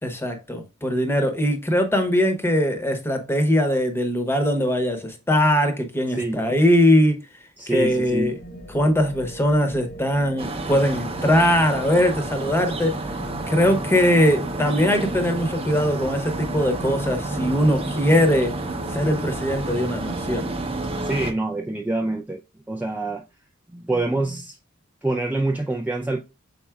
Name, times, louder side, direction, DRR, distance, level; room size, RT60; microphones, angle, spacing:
voice 1, 0.0-7.2 7.7-8.4 8.7-13.0 13.5-18.5 18.9-20.5, equal, 10° left, 0.9 m, -21 dB
voice 2, 6.2-6.5 7.6-8.3 21.0-22.4 22.7-23.2 23.7-24.6 25.0-26.2, right 2 dB, 10° right, 0.3 m, -26 dB
sound 1, 7.7-20.6, right 1 dB, 50° left, 1.0 m, -39 dB
sound 2, 10.4-21.3, right 2 dB, 30° right, 0.7 m, -30 dB
5.7 x 4.0 x 2.3 m
head